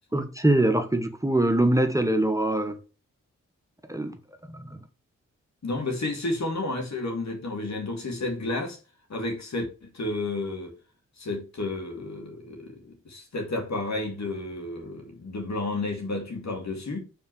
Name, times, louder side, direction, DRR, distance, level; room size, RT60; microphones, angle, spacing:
voice 1, 0.1-2.8 3.9-4.2 4.5-4.8, right 1 dB, 10° right, 1.2 m, -23 dB
voice 2, 5.6-8.8 9.1-10.7 11.2-17.0, left 2 dB, 55° left, 2.7 m, -31 dB
5.4 x 4.3 x 6.1 m
supercardioid pair, 40°, 33 cm